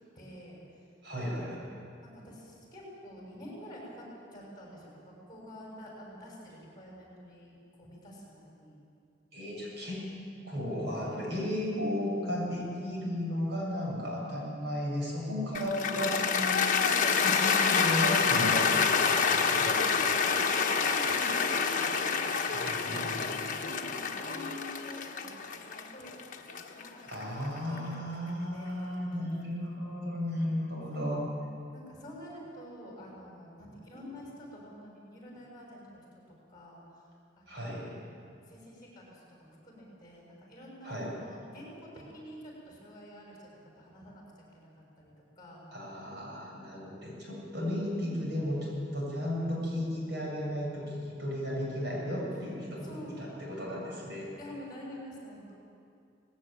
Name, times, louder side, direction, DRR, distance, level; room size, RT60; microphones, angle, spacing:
voice 1, 0.1-0.6 2.0-4.1 4.3-8.8 16.7-17.4 19.5-21.4 22.0-26.2 26.5-29.0 30.9-36.0 36.5-36.8 37.3-43.5 43.7-44.7 45.0-45.7 52.8-53.2 54.4-55.5, equal, 20° left, -3 dB, 6.4 m, -48 dB
voice 2, 1.0-1.7 9.3-10.0 10.4-16.6 17.2-19.7 22.6-23.2 27.0-31.2 37.5-37.9 40.8-41.2 45.7-54.3, left 1 dB, 60° right, -4 dB, 7.5 m, -34 dB
Cheering / Applause, 15.5-27.8, left 5 dB, 45° left, 1.3 m, -28 dB
19.0 x 17.5 x 8.9 m, 2.5 s
head